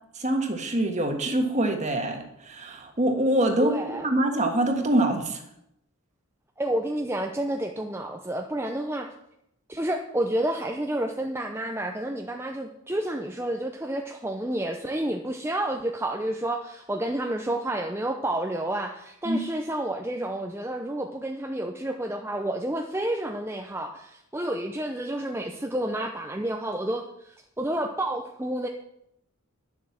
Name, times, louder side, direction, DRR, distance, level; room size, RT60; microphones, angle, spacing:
voice 1, 0.1-5.4 19.2-19.4, right 1 dB, 35° right, 4 dB, 1.6 m, -25 dB
voice 2, 3.6-4.1 6.6-9.1 9.7-28.7, right 1 dB, 10° right, 2 dB, 0.6 m, -30 dB
11.0 x 7.6 x 7.2 m, 0.80 s
head